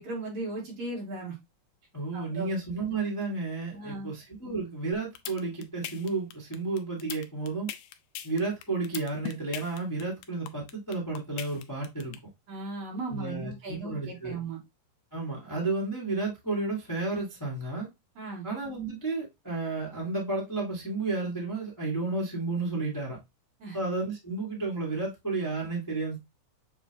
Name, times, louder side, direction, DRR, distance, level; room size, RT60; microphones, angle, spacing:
voice 1, 0.0-1.3 2.1-2.5 3.7-4.1 12.5-14.6 18.2-18.5 23.6-23.8, right 3 dB, 60° right, 3.0 m, -37 dB
voice 2, 1.9-7.7 8.2-12.2 13.1-14.4 15.1-17.9 18.4-23.2 23.7-26.2, right 3 dB, 10° left, 0.9 m, -32 dB
sound 1, 4.9-12.2, left 12 dB, 85° left, 2.1 m, -39 dB
7.1 x 2.5 x 2.9 m
omnidirectional pair, 3.5 m